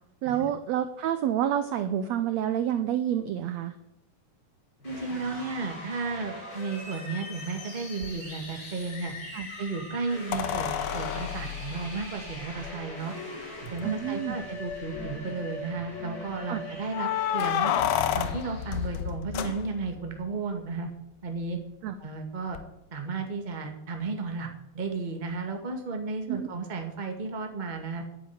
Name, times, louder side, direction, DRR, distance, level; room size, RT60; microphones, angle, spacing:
voice 1, 0.2-3.7 9.3-9.5 13.8-14.4 16.5-16.6 21.8-21.9 26.3-26.5, right 10 dB, 80° right, 10 dB, 1.5 m, -28 dB
sound 1, 4.8-19.0, left 1 dB, 30° left, 6.7 m, -41 dB
voice 2, 4.8-9.1 9.6-13.1 13.7-17.7 18.1-20.9 21.2-21.6 22.0-22.6 22.9-24.5 24.7-28.0, right 4 dB, 20° right, 4 dB, 1.2 m, -33 dB
sound 2, 8.0-8.1 10.3-12.7 13.7-13.8 14.1-14.2 14.7-15.2 16.9-20.1 22.5-22.6, left 11 dB, 80° left, 2.5 m, -30 dB
10.5 x 9.2 x 9.6 m, 0.84 s
omnidirectional pair, 4.0 m